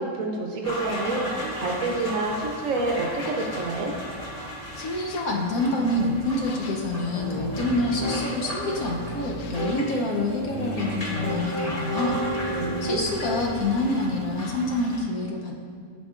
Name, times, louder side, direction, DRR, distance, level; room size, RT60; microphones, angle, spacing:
voice 1, 0.0-3.9 12.5-13.1, right 2 dB, 65° right, 1 dB, 1.0 m, -28 dB
sound 1, 0.6-15.0, equal, 30° left, 0.9 m, -36 dB
sound 2, 1.6-2.2 3.0-3.8 4.7-5.3 6.3-6.9 7.8-8.5 9.2-9.8, left 5 dB, 90° left, 1.1 m, -47 dB
voice 2, 4.8-12.2 12.8-15.5, left 2 dB, 70° left, 0 dB, 1.1 m, -27 dB
Piano, 7.2-8.2 8.6-9.7 10.4-13.6, equal, 10° left, 1.5 m, -32 dB
11.5 x 4.3 x 2.4 m, 2.1 s
omnidirectional pair, 1.6 m